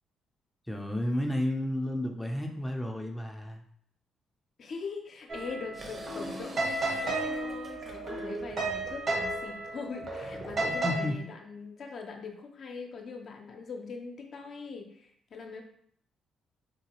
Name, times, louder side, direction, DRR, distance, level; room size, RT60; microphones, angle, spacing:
voice 1, 0.7-3.6 10.6-11.1, left 1 dB, 5° left, 2 dB, 0.5 m, -32 dB
voice 2, 4.6-15.6, left 4 dB, 60° left, 2 dB, 0.6 m, -42 dB
sound 1, 5.3-11.0, right 2 dB, 55° right, 1.1 m, -33 dB
sound 2, 5.7-11.1, right 2 dB, 35° right, 0.8 m, -47 dB
3.9 x 2.2 x 2.9 m, 0.65 s
cardioid pair, 90°, 0 cm